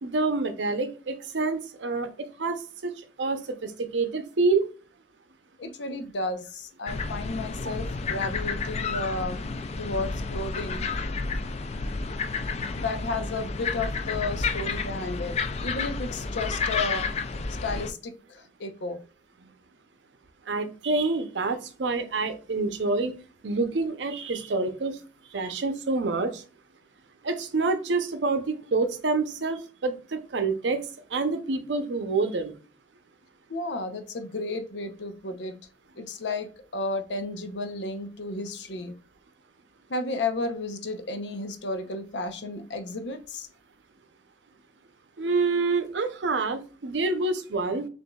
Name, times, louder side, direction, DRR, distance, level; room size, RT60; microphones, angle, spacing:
voice 1, 0.0-2.9 3.2-4.7 19.4-19.5 20.5-23.1 23.4-25.0 25.3-26.4 27.2-30.8 31.1-32.5 45.2-47.9, right 3 dB, 85° right, 9 dB, 0.7 m, -27 dB
voice 2, 5.6-9.5 9.8-10.9 12.7-17.1 17.6-19.0 33.5-35.5 36.0-38.9 39.9-43.5, left 2 dB, 80° left, 8 dB, 0.7 m, -33 dB
sound 1, 6.9-17.9, left 4 dB, 35° left, 0.4 m, -31 dB
6.8 x 2.6 x 2.3 m, 0.38 s
head